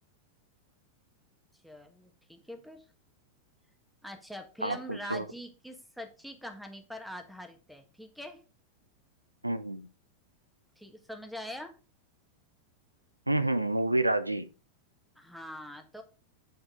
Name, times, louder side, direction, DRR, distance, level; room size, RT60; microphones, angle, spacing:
voice 1, 1.6-2.8 4.0-8.4 10.8-11.7 15.1-16.0, equal, ahead, 1.5 m, -43 dB
voice 2, 4.6-5.3 9.4-9.9 13.3-14.5, right 2 dB, 85° right, 0.5 m, -29 dB
9.2 x 4.6 x 4.8 m
figure-of-eight pair, 90°, 0 cm